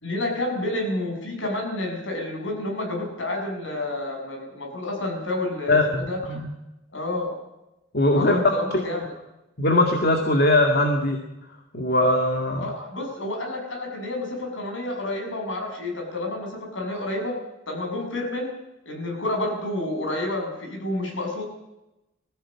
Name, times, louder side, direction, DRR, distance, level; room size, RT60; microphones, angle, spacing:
voice 1, 0.0-6.4 6.9-7.4 8.1-9.1 12.6-17.4 17.7-18.5 18.9-21.4, left 1 dB, 70° left, 3 dB, 6.9 m, -29 dB
voice 2, 5.7-6.0 6.3-6.5 7.9-8.4 9.6-11.2 11.7-12.7, left 1 dB, 50° left, 3 dB, 2.1 m, -20 dB
21.0 x 15.5 x 8.6 m, 0.96 s
head